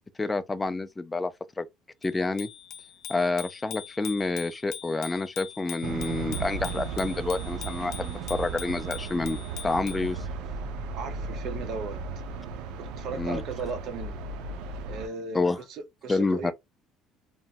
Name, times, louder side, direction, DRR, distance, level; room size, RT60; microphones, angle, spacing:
voice 1, 0.2-1.3 1.6-1.7 2.0-2.5 3.1-10.2 13.2-13.4 15.3-15.6 16.1-16.5, left 3 dB, 15° left, 0.4 m, -28 dB
Bicycle bell, 2.0-10.1, left 10 dB, 60° left, 0.5 m, -43 dB
sound 1, 5.8-15.1, right 4 dB, 80° right, 0.5 m, -35 dB
voice 2, 10.9-12.0 12.8-14.2 14.9-16.5, right 5 dB, 55° right, 1.0 m, -36 dB
3.0 x 2.2 x 2.7 m
cardioid pair, 140°, 0 cm